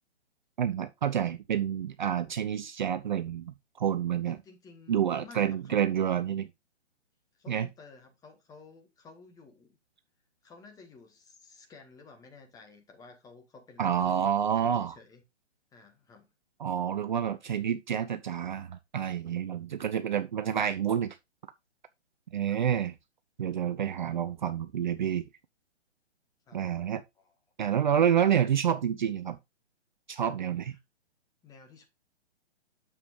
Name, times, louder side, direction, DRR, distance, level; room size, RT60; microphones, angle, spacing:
voice 1, 0.6-4.4 4.9-6.5 7.5-7.7 13.8-14.9 16.6-21.2 22.3-22.9 23.4-25.3 26.5-27.0 27.6-29.4 30.1-30.8, right 9 dB, 40° right, 0.7 m, -28 dB
voice 2, 4.3-6.0 7.3-9.8 10.4-15.2 15.7-16.3 22.5-22.6 26.5-26.6 27.2-27.3 28.0-28.4 31.4-31.8, left 4 dB, 10° left, 1.5 m, -53 dB
9.6 x 7.2 x 2.6 m
figure-of-eight pair, 130°, 35 cm